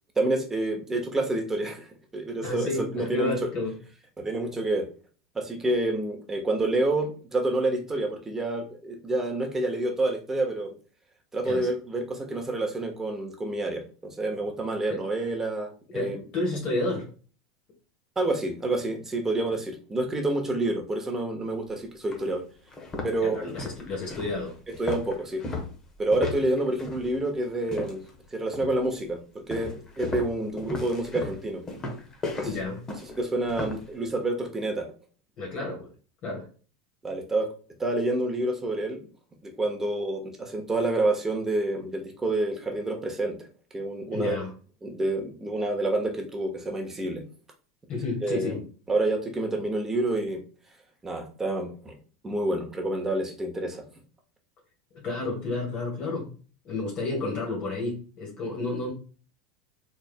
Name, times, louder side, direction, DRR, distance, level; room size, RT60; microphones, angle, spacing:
voice 1, 0.2-1.8 2.1-3.5 4.2-4.9 5.3-10.7 11.3-16.2 18.2-22.4 23.0-23.4 24.8-25.4 26.0-28.0 28.3-29.2 29.5-31.6 32.3-32.5 33.2-34.9 37.0-37.5 37.8-39.0 39.4-43.4 43.7-44.4 44.8-47.2 48.2-48.6 48.9-50.4 51.0-51.9 52.2-53.8, right 2 dB, 15° right, 2 dB, 1.2 m, -28 dB
voice 2, 2.4-3.8 11.4-11.7 14.9-15.0 15.9-17.1 23.2-24.6 32.4-32.8 35.4-35.9 36.2-36.5 44.1-44.5 47.9-48.6 55.0-56.3 56.6-58.9, left 2 dB, 45° left, -2 dB, 2.0 m, -31 dB
sound 1, 21.5-21.6 22.1-22.2 22.7-28.2 28.5-28.9 29.5-33.9, left 3 dB, 25° left, 1.2 m, -35 dB
4.3 x 3.7 x 2.2 m, 0.38 s
hypercardioid pair, 85°, 3 cm